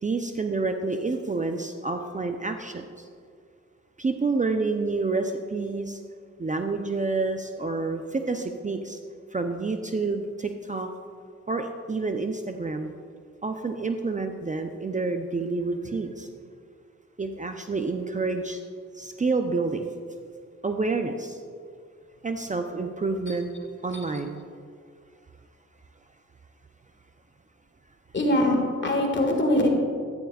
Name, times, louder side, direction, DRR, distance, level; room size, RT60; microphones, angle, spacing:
voice 1, 0.0-3.1 4.0-6.0 6.4-9.0 9.3-10.9 11.5-12.9 13.4-16.3 17.2-18.6 18.9-19.9 20.6-21.4 22.2-23.5 23.8-24.4, right 3 dB, 25° right, 6 dB, 0.6 m, -28 dB
voice 2, 28.1-29.7, left 1 dB, 40° left, 2 dB, 2.0 m, -23 dB
11.5 x 9.5 x 2.4 m, 2.1 s
cardioid pair, 50°, 30 cm